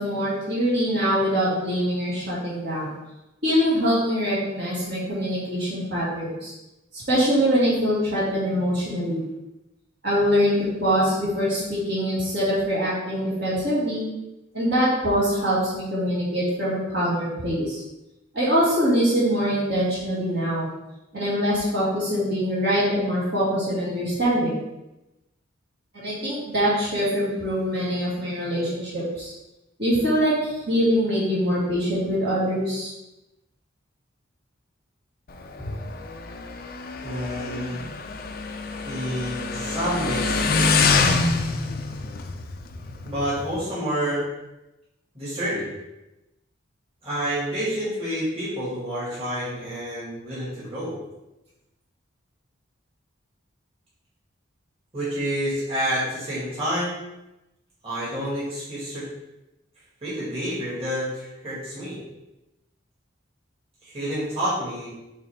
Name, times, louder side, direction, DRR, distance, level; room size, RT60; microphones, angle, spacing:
voice 1, 0.0-2.9 3.4-6.5 6.9-9.2 10.0-14.1 14.5-17.8 18.3-20.7 21.1-24.6 25.9-29.3 29.8-32.9, equal, 55° right, -8 dB, 2.3 m, -23 dB
Motorcycle, 35.3-43.6, left 4 dB, 45° left, 0.5 m, -26 dB
voice 2, 37.0-37.8 38.9-40.9 43.0-44.3 45.1-45.7 47.0-51.0 54.9-57.0 57.8-59.1 60.0-62.0 63.8-64.9, equal, 30° right, -9 dB, 2.3 m, -29 dB
8.9 x 3.3 x 3.6 m, 0.96 s
head